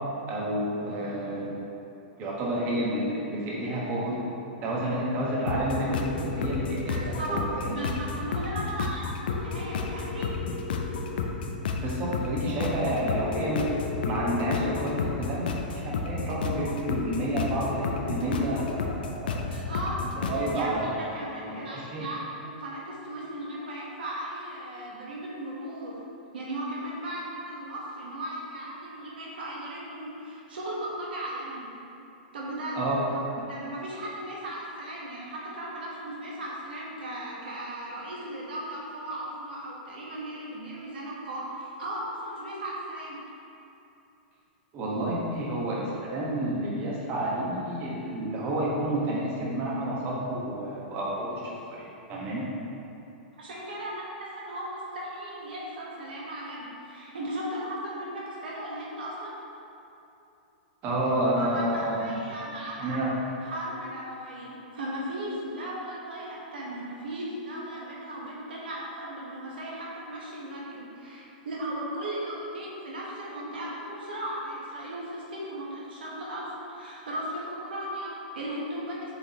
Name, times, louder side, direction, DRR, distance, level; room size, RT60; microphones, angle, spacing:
voice 1, 0.2-1.6 2.2-4.2 4.6-7.7 11.8-13.6 14.0-19.5 20.2-20.9 21.4-22.1 32.7-33.0 33.4-33.5 44.7-52.5 60.8-62.2 62.8-63.1, right 1 dB, 35° right, -5 dB, 1.4 m, -30 dB
sound 1, 5.5-20.6, left 5 dB, 70° left, 0.5 m, -32 dB
voice 2, 6.9-7.4 7.7-10.4 19.5-19.9 20.3-26.0 26.3-31.7 32.3-43.2 53.4-59.4 61.4-63.1 63.4-79.1, right 1 dB, 80° right, -5 dB, 1.3 m, -37 dB
7.7 x 3.9 x 3.1 m, 2.8 s
hypercardioid pair, 120°, 5 cm